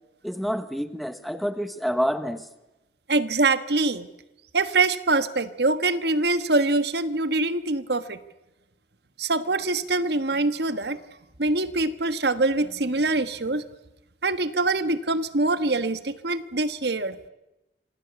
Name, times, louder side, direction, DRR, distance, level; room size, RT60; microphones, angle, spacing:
voice 1, 0.2-2.5, equal, ahead, 1.1 m, -28 dB
voice 2, 3.1-4.1 4.5-8.2 9.2-11.0 11.4-13.6 14.2-17.2, right 2 dB, 60° right, 1.4 m, -24 dB
26.5 x 26.5 x 8.2 m
head